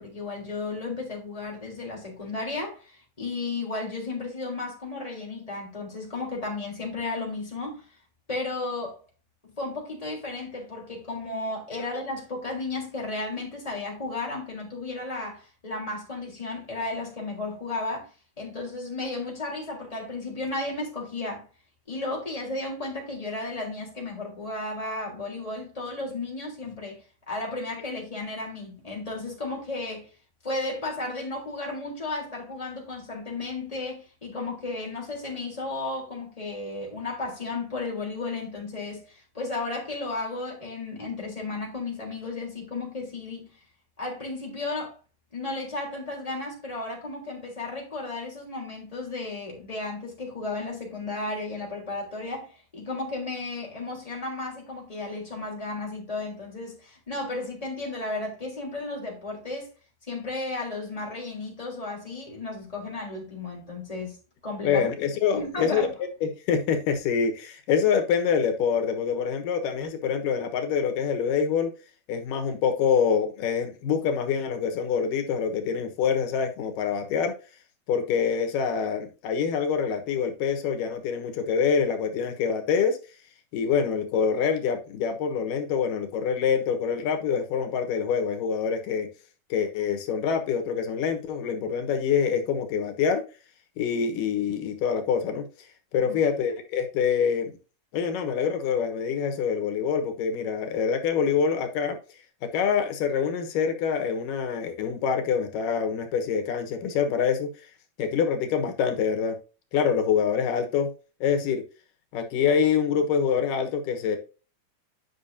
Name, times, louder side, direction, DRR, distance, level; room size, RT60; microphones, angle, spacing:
voice 1, 0.0-7.8 8.3-9.0 9.6-18.1 18.4-21.5 21.9-30.1 30.4-43.5 44.0-44.9 45.3-59.7 60.1-64.2 64.4-64.9 65.3-65.9 96.0-96.2, left 2 dB, 10° left, 3.5 m, -34 dB
voice 2, 64.6-65.9 66.5-71.7 72.1-77.3 77.9-83.0 83.5-89.1 89.5-93.2 93.8-95.5 95.9-97.5 97.9-102.0 102.5-107.5 108.0-109.4 109.7-110.9 111.2-111.6 112.1-114.2, left 7 dB, 90° left, 2.9 m, -25 dB
11.0 x 5.8 x 2.7 m
omnidirectional pair, 3.7 m